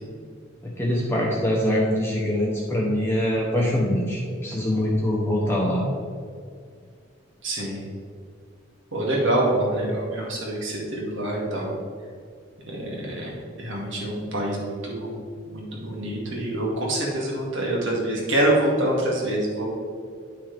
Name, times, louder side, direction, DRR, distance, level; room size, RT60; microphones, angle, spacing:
voice 1, 0.6-5.8, left 1 dB, 10° left, -4 dB, 1.0 m, -23 dB
voice 2, 7.4-7.8 8.9-11.7 12.7-15.1 15.5-19.7, right 1 dB, 80° right, -3 dB, 2.2 m, -26 dB
10.0 x 6.1 x 3.4 m, 2.2 s
head